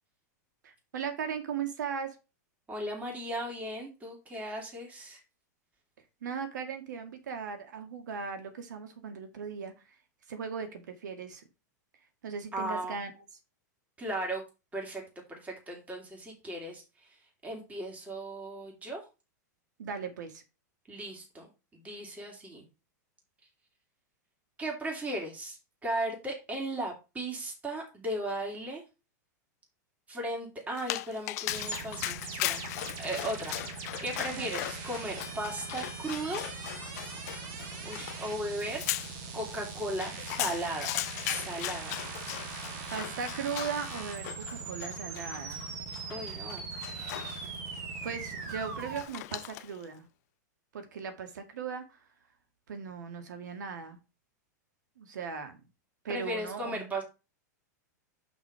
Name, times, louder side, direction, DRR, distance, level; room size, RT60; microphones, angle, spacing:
voice 1, 0.6-2.2 6.2-9.9 10.3-11.4 12.2-13.1 19.8-20.4 34.3-34.6 42.9-45.6 48.0-50.1 50.7-52.0 52.7-54.0 55.0-55.6 56.0-56.9, right 6 dB, 75° right, 1.9 m, -38 dB
voice 2, 2.7-5.2 12.5-13.0 14.0-14.4 14.7-15.0 15.3-19.0 20.9-21.5 21.7-22.7 24.6-25.6 25.8-28.8 30.1-32.7 33.0-36.5 37.8-38.8 39.3-41.0 41.2-42.0 46.1-46.6 56.1-57.0, right 1 dB, 15° right, 2.9 m, -36 dB
Dog, 30.8-49.8, left 17 dB, 60° left, 0.4 m, -39 dB
sound 1, 31.5-49.0, right 5 dB, 45° right, 2.2 m, -41 dB
5.9 x 5.4 x 4.8 m
hypercardioid pair, 115°, 10 cm